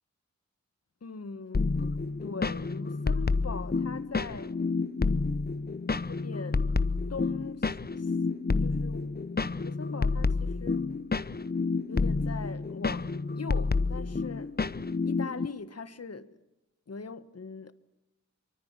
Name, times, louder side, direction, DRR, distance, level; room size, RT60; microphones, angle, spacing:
voice 1, 1.0-1.9 2.2-4.6 6.1-6.7 7.1-8.1 8.5-9.2 9.5-10.9 11.9-14.5 15.0-16.4 16.9-17.7, left 5 dB, 55° left, 1.5 m, -41 dB
sound 1, 1.5-15.5, left 4 dB, 35° left, 0.8 m, -29 dB
25.0 x 24.0 x 7.6 m
wide cardioid pair, 75°, 29 cm